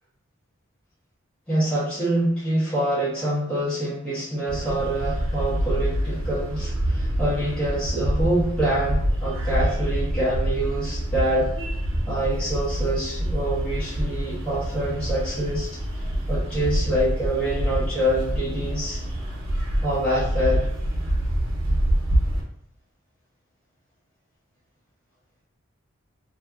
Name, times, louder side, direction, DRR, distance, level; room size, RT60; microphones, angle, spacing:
voice 1, 1.5-11.5 12.1-15.7 16.3-19.0 19.8-20.6, right 1 dB, 5° left, -12 dB, 1.2 m, -26 dB
sound 1, 4.5-22.4, equal, 75° right, 0.8 m, -26 dB
2.6 x 2.5 x 2.3 m, 0.70 s
head